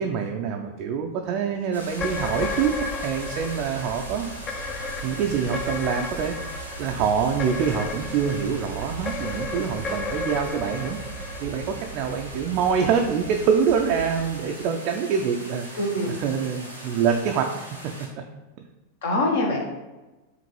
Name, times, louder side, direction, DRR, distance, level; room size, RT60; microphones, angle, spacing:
voice 1, 0.0-4.3 5.0-15.7 16.2-17.5, right 7 dB, 40° right, 2 dB, 0.4 m, -25 dB
sound 1, 1.7-18.1, equal, 90° left, 0.9 m, -41 dB
sound 2, 1.9-12.4, left 3 dB, 25° left, 0.4 m, -34 dB
sound 3, 3.2-14.3, right 5 dB, 80° right, 0.7 m, -40 dB
voice 2, 15.7-16.2 19.0-19.6, left 1 dB, 55° left, 0 dB, 1.0 m, -24 dB
5.2 x 2.5 x 3.1 m, 1.1 s
figure-of-eight pair, 90°, 0 cm